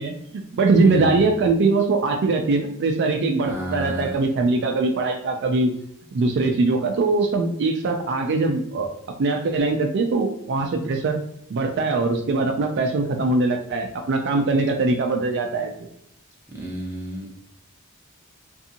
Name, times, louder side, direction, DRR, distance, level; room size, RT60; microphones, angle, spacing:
voice 1, 0.0-5.7 6.1-8.9 9.2-11.2 11.5-15.7, right 3 dB, 55° right, 3 dB, 0.3 m, -22 dB
voice 2, 0.8-1.2 3.4-4.2 16.5-17.3, equal, 10° right, -3 dB, 0.7 m, -31 dB
2.6 x 2.5 x 2.7 m, 0.76 s
head